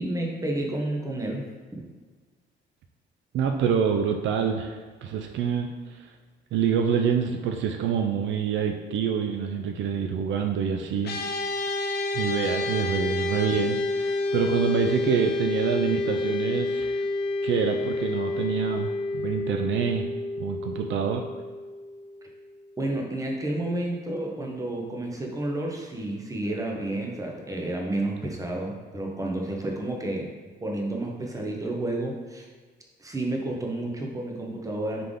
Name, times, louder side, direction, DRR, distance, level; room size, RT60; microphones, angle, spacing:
voice 1, 0.0-1.5 1.7-1.8 22.8-30.3 30.6-32.5 33.0-35.0, right 1 dB, 15° right, 0 dB, 0.8 m, -30 dB
voice 2, 3.3-6.1 6.5-11.2 12.1-17.0 17.4-18.9 19.1-20.0 20.4-21.2, right 7 dB, 70° right, 4 dB, 0.4 m, -26 dB
sound 1, 11.0-22.5, left 2 dB, 55° left, 0.5 m, -29 dB
3.8 x 3.3 x 3.6 m, 1.4 s
cardioid pair, 90°, 20 cm